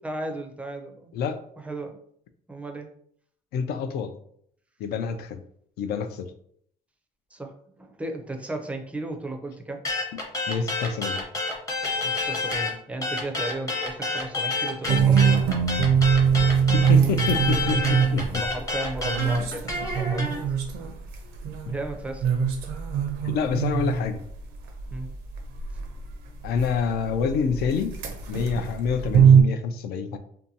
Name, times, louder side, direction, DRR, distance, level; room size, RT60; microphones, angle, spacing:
voice 1, 0.0-1.1 1.6-2.0 2.5-2.9 7.3-9.8 12.0-15.4 18.3-20.4 21.7-22.2 24.9-25.1, right 2 dB, 5° right, 3 dB, 0.4 m, -35 dB
voice 2, 3.5-4.1 4.8-5.4 5.8-6.3 10.5-11.2 16.7-18.4 23.2-24.2 26.4-28.0 28.3-30.2, left 6 dB, 70° left, 8 dB, 0.4 m, -27 dB
sound 1, 9.8-12.7 13.0-20.3, left 3 dB, 20° left, 0.7 m, -28 dB
sound 2, 14.9-21.9 22.2-26.1 26.4-29.4, right 7 dB, 80° right, 0.5 m, -22 dB
2.6 x 2.2 x 2.7 m, 0.64 s
cardioid pair, 110°, 17 cm